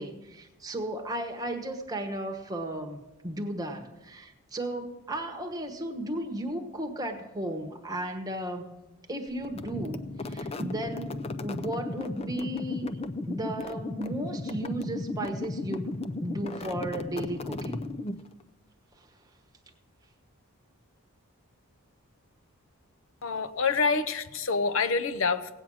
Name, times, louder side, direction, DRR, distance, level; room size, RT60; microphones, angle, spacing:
voice 1, 0.0-3.0 3.2-8.7 9.1-12.9 13.3-15.9 16.2-17.9, right 1 dB, 15° right, 4 dB, 1.2 m, -35 dB
sound 1, 9.4-18.4, left 2 dB, 25° left, 0.4 m, -35 dB
voice 2, 23.2-25.6, left 4 dB, 60° left, 10 dB, 0.7 m, -27 dB
17.5 x 8.9 x 6.3 m, 1.0 s
head